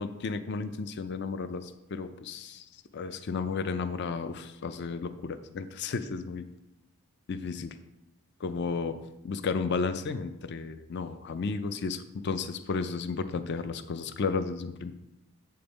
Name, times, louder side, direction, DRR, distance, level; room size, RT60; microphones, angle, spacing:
voice 1, 0.0-2.7 2.9-6.4 7.3-7.8 8.4-9.0 9.2-14.9, left 4 dB, 50° left, 11 dB, 0.4 m, -33 dB
7.7 x 5.2 x 4.0 m, 0.92 s
head